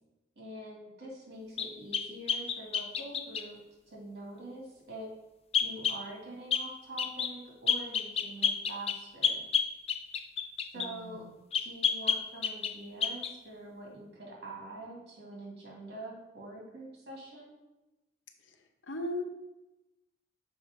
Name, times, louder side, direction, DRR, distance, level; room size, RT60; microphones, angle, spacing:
voice 1, 0.4-3.6 3.9-5.1 5.6-9.4 10.7-11.2 11.6-17.6, right 1 dB, 60° right, -2 dB, 2.3 m, -45 dB
sound 1, 1.6-3.5 5.5-6.0 6.5-6.7 7.0-7.3 7.7-10.9 11.5-12.8 13.0-13.3, left 7 dB, 35° left, 0.4 m, -30 dB
voice 2, 10.8-11.2 18.9-19.2, left 1 dB, 80° left, 5 dB, 0.8 m, -36 dB
6.3 x 4.4 x 5.0 m, 0.98 s
head